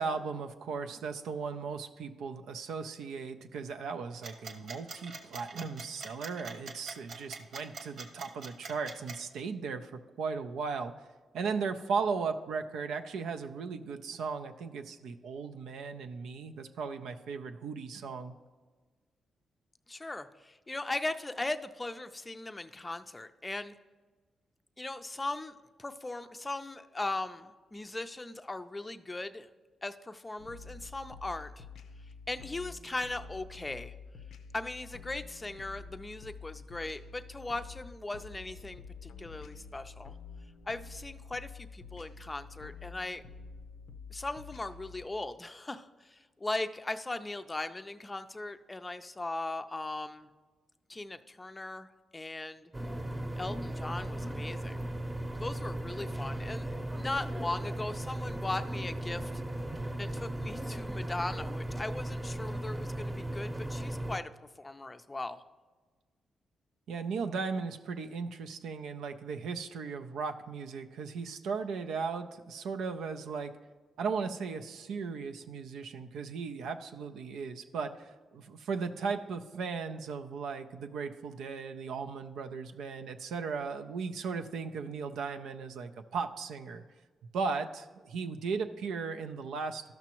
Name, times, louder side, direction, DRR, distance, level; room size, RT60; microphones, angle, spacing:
voice 1, 0.0-10.9 11.3-18.3 66.9-73.6 74.0-86.8 87.3-89.9, right 5 dB, 85° right, 6 dB, 0.5 m, -36 dB
sound 1, 4.2-9.2, right 4 dB, 70° right, 1.1 m, -44 dB
voice 2, 19.9-23.7 24.8-29.5 29.8-31.7 32.3-33.9 34.5-40.1 40.7-43.2 44.1-50.3 50.9-52.7 53.4-54.9 55.4-59.3 60.0-64.3 64.6-65.4, left 2 dB, 20° left, 8 dB, 0.5 m, -38 dB
sound 2, 30.4-45.1, left 5 dB, 85° left, 0.5 m, -48 dB
sound 3, 52.7-64.2, right 1 dB, 20° right, 0.8 m, -37 dB
13.0 x 6.0 x 3.0 m, 1.4 s
cardioid pair, 70°, 0 cm